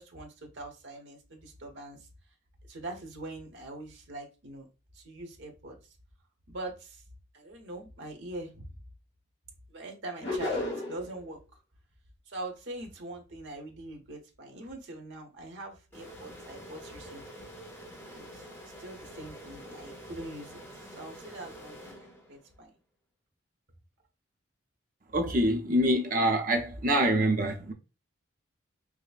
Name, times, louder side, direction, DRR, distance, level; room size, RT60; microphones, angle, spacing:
voice 1, 0.0-2.0 2.7-4.6 4.9-5.8 6.5-7.0 7.3-8.6 9.7-11.4 12.3-17.4 18.1-18.5 18.8-22.7, right 2 dB, 65° right, 1.0 m, -43 dB
sound 1, 10.2-11.1, left 2 dB, 60° left, 1.1 m, -32 dB
sound 2, 15.9-22.6, equal, 10° left, 0.8 m, -47 dB
voice 2, 25.1-27.7, right 1 dB, 45° right, 0.7 m, -25 dB
4.9 x 2.2 x 2.4 m
head